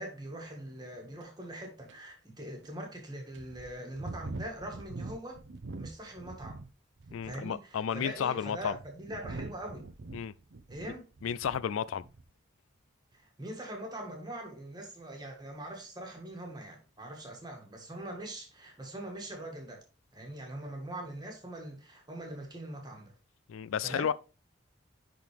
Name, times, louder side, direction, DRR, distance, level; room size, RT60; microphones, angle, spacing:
voice 1, 0.0-5.4 5.8-6.6 7.2-9.9 10.7-11.0 13.1-19.8 20.1-23.1 23.8-24.1, right 1 dB, 20° right, 1.6 m, -42 dB
sound 1, 1.2-1.3 1.9-2.0 2.6-2.7 3.3-6.7 7.0-7.5 8.2-11.7 12.0-12.3, right 3 dB, 65° right, 0.6 m, -44 dB
voice 2, 7.1-8.8 10.1-10.3 11.2-12.0 23.5-24.1, left 8 dB, 85° left, 0.4 m, -32 dB
10.5 x 3.9 x 3.4 m
head